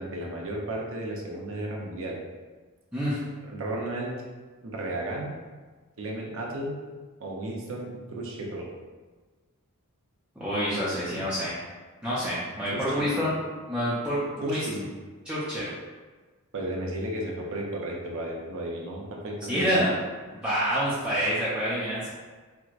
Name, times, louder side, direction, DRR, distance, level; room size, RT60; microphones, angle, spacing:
voice 1, 0.0-2.2 3.5-4.1 4.6-5.3 6.0-6.8 7.2-8.7 11.1-11.2 12.7-13.2 14.4-14.9 16.5-19.7, right 1 dB, 65° right, -1 dB, 0.6 m, -34 dB
voice 2, 10.4-11.5 12.0-13.3 13.7-14.6 15.2-15.7 19.5-19.9 20.3-22.1, equal, 5° right, -11 dB, 0.5 m, -27 dB
4.4 x 2.1 x 2.4 m, 1.4 s
head